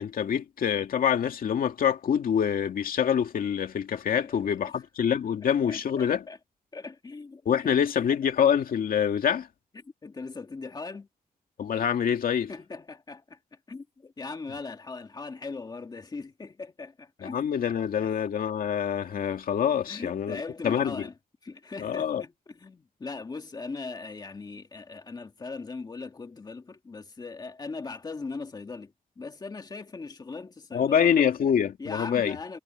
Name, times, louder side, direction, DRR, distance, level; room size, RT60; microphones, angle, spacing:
voice 1, 0.0-6.2 7.5-9.5 11.6-12.5 17.2-21.1 21.8-22.2 30.7-32.4, left 8 dB, 70° left, 2.2 m, -26 dB
voice 2, 5.4-6.4 6.7-7.7 9.8-11.1 12.5-13.4 13.7-17.5 18.0-18.1 19.9-21.1 21.4-31.1 31.8-32.6, left 4 dB, 25° left, 1.9 m, -39 dB
wide cardioid pair, 170°, 15 cm